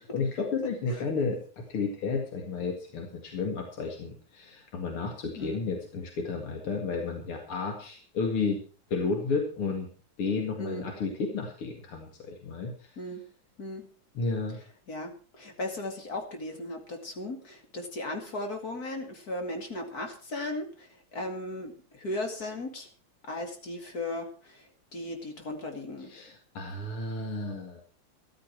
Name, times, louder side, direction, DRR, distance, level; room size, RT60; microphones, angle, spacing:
voice 1, 0.1-8.6 8.9-9.9 10.2-12.9 14.1-14.6 26.1-27.8, left 4 dB, 85° left, 3 dB, 3.0 m, -32 dB
voice 2, 14.9-22.9 23.3-26.1, left 2 dB, 45° left, 4 dB, 2.7 m, -37 dB
14.0 x 13.0 x 4.6 m, 0.37 s
omnidirectional pair, 2.3 m